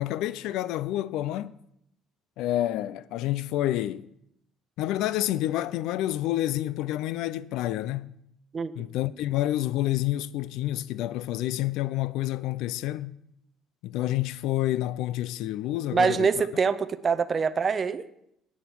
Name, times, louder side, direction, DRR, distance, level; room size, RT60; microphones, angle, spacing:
voice 1, 0.0-1.5 2.4-4.1 4.8-8.2 8.8-13.2 13.8-16.3, left 14 dB, 75° left, 0.5 m, -28 dB
voice 2, 15.9-18.0, right 5 dB, 35° right, 0.6 m, -24 dB
10.0 x 8.8 x 6.1 m
cardioid pair, 105°, 0 cm